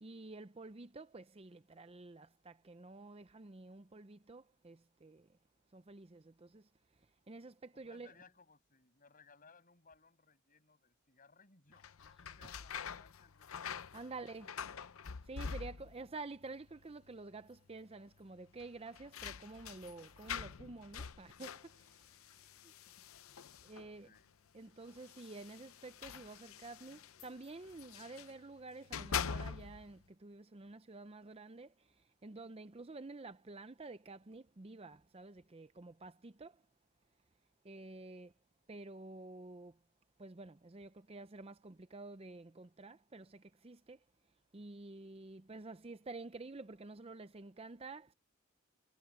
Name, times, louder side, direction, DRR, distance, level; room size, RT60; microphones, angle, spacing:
voice 1, 0.0-5.2 5.7-6.6 7.3-8.1 12.4-12.5 13.9-14.5 15.3-21.6 23.6-24.1 24.5-31.7 32.2-36.5 37.7-38.3 38.7-39.7 40.2-44.0 44.5-48.1, right 3 dB, 25° right, 0.6 m, -50 dB
voice 2, 7.7-14.7 23.7-24.3, left 4 dB, 40° left, 7.3 m, -65 dB
sound 1, 11.7-16.1 16.4-17.1 17.4-17.5 18.6-24.0 24.9-28.4 28.7-29.9, left 7 dB, 75° left, 0.7 m, -45 dB
head